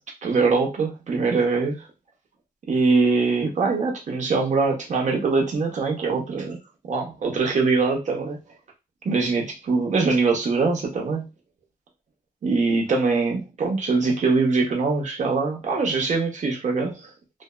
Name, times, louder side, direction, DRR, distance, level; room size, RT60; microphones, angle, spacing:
voice 1, 0.2-1.9 2.7-6.6 6.9-8.4 9.0-11.3 12.4-17.1, right 4 dB, 50° right, 1 dB, 0.8 m, -23 dB
2.5 x 2.1 x 2.3 m, 0.26 s
cardioid pair, 100°, 16 cm